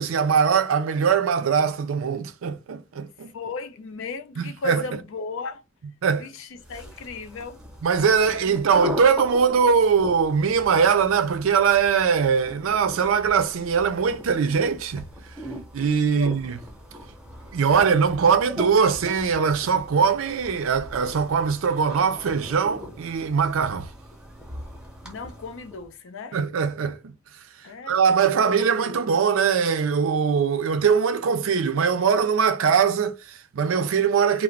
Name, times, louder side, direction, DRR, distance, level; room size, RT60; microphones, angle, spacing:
voice 1, 0.0-3.3 4.4-4.8 6.0-6.3 7.8-15.0 15.7-16.6 17.5-23.9 26.3-27.1 27.9-34.4, right 6 dB, 70° right, 0.4 m, -21 dB
voice 2, 3.3-5.6 6.2-7.6 8.4-8.6 16.0-16.4 25.0-26.4 27.6-29.0, left 4 dB, 65° left, 0.5 m, -36 dB
sound 1, 6.6-25.9, left 1 dB, 5° right, 0.7 m, -40 dB
2.4 x 2.0 x 3.1 m
head